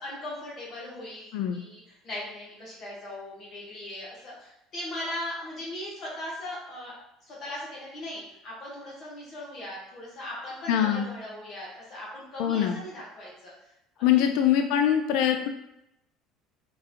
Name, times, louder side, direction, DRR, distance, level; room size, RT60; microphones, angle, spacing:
voice 1, 0.0-6.9 7.2-13.5 14.0-14.3, left 1 dB, 45° left, -6 dB, 1.1 m, -39 dB
voice 2, 10.7-11.1 12.4-12.8 14.0-15.5, left 10 dB, 75° left, 5 dB, 0.3 m, -23 dB
3.8 x 2.4 x 2.7 m, 0.83 s
cardioid pair, 130°, 0 cm